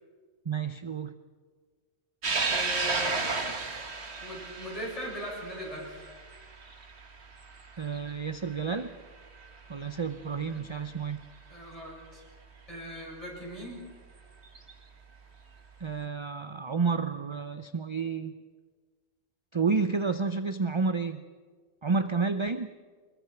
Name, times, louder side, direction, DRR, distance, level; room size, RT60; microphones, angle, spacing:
voice 1, 0.4-1.1 7.8-8.9 9.7-11.2 15.8-18.4 19.5-21.2 21.8-22.7, right 4 dB, 30° right, 10 dB, 0.6 m, -30 dB
sound 1, 2.2-8.9 9.4-9.5 10.7-10.8 13.0-13.1 14.4-14.7, right 3 dB, 70° right, 2.1 m, -33 dB
voice 2, 2.5-3.2 4.2-6.1 11.5-12.2 12.7-13.9, equal, 30° left, -3 dB, 7.5 m, -39 dB
23.0 x 21.5 x 6.0 m, 1.5 s
omnidirectional pair, 1.1 m